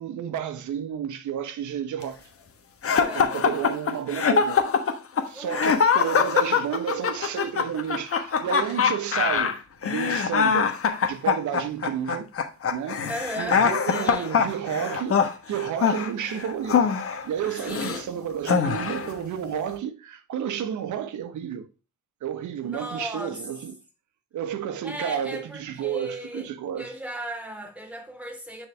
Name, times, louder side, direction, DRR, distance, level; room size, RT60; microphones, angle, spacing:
voice 1, 0.0-2.2 3.1-4.7 5.3-9.6 9.8-10.7 11.0-12.3 12.7-13.0 13.4-15.2 15.5-16.9 17.2-21.7 22.2-23.7 24.3-26.9, right 9 dB, 75° right, 1.3 m, -31 dB
sound 1, 2.8-18.0 18.4-19.1, left 6 dB, 50° left, 1.3 m, -23 dB
voice 2, 2.9-3.3 5.3-5.7 13.1-14.4 17.6-18.1 22.6-23.4 24.8-26.5 26.8-28.7, right 1 dB, 5° right, 3.4 m, -36 dB
9.6 x 4.3 x 3.3 m
cardioid pair, 90°, 30 cm